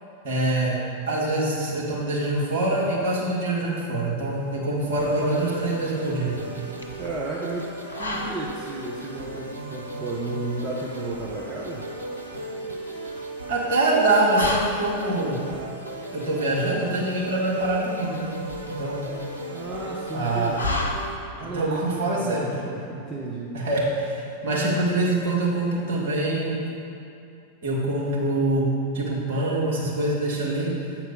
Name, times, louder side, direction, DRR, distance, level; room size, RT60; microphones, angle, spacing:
voice 1, 0.2-0.8 1.1-6.4 13.5-15.4 16.1-18.3 18.6-19.1 20.1-20.5 21.4-22.4 23.5-26.6 27.6-28.7 28.9-30.7, right 2 dB, 55° right, -5 dB, 1.9 m, -24 dB
sound 1, 4.5-21.6, left 2 dB, 75° left, 0.6 m, -36 dB
sound 2, 5.0-21.1, right 1 dB, 85° right, 0.8 m, -37 dB
voice 2, 7.0-11.9 19.5-20.8 21.4-23.6, right 2 dB, 25° right, -3 dB, 0.8 m, -33 dB
7.9 x 4.5 x 5.4 m, 2.7 s
figure-of-eight pair, 90°, 0 cm